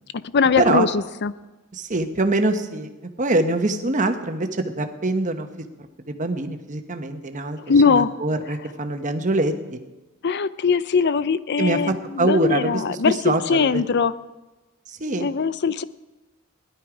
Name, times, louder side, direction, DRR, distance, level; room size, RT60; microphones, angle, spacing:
voice 1, 0.1-1.3 7.6-8.1 10.2-14.1 15.2-15.8, left 5 dB, 50° left, 16 dB, 0.5 m, -21 dB
voice 2, 1.7-2.9 3.2-5.7 6.0-7.6 7.9-9.8 11.6-13.8 14.9-15.3, right 2 dB, 35° right, 7 dB, 1.1 m, -24 dB
17.0 x 11.5 x 5.0 m, 1.1 s
head